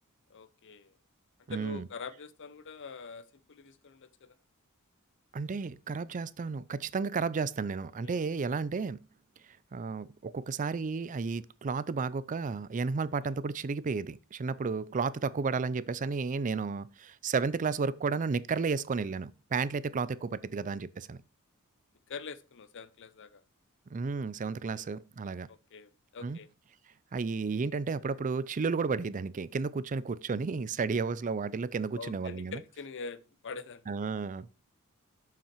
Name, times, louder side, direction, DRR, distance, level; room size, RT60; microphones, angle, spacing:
voice 1, 0.3-0.9 1.5-4.3 8.0-8.2 13.3-13.4 20.2-20.3 22.1-23.4 24.7-24.9 25.5-26.5 31.9-34.1, left 4 dB, 60° left, 0.7 m, -45 dB
voice 2, 1.5-1.9 5.3-9.0 9.7-21.2 23.9-25.5 26.2-26.4 27.1-32.6 33.9-34.5, right 4 dB, 35° right, 0.4 m, -32 dB
7.2 x 5.9 x 4.5 m
head